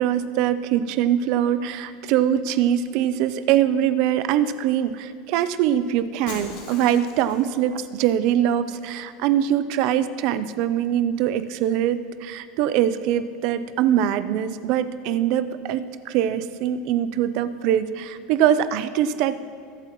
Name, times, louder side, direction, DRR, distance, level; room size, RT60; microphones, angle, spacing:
voice 1, 0.0-19.4, right 10 dB, 50° right, 13 dB, 0.5 m, -23 dB
Shatter, 6.3-7.6, left 3 dB, 65° left, 2.8 m, -39 dB
21.5 x 8.4 x 3.1 m, 2.2 s
supercardioid pair, 170°, 0 cm